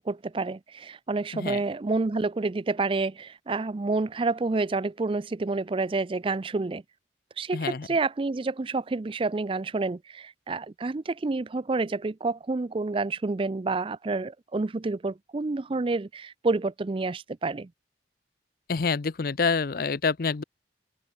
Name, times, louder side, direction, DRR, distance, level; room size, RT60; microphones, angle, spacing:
voice 1, 0.0-6.8 7.4-17.7, right 3 dB, 30° right, 0.4 m, -29 dB
voice 2, 7.5-7.9 18.7-20.4, left 5 dB, 55° left, 0.6 m, -27 dB
open air
head